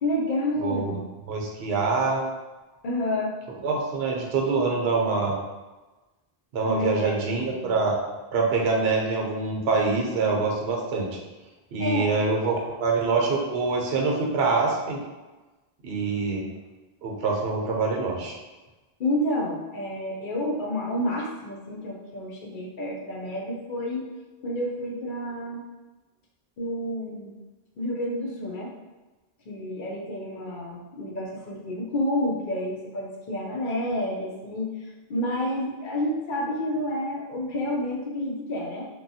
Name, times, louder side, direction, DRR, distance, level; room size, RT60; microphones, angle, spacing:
voice 1, 0.0-1.1 2.8-3.3 6.6-7.7 11.8-12.1 19.0-24.0 24.4-25.6 26.6-27.3 27.8-28.7 29.5-38.9, left 1 dB, 60° left, -2 dB, 0.6 m, -29 dB
voice 2, 0.6-0.9 1.3-2.2 3.6-5.4 6.5-8.0 8.3-11.2 11.7-15.0 15.8-16.5 17.0-18.4, right 4 dB, 90° right, 0 dB, 0.9 m, -25 dB
2.9 x 2.2 x 2.6 m, 1.2 s
omnidirectional pair, 1.0 m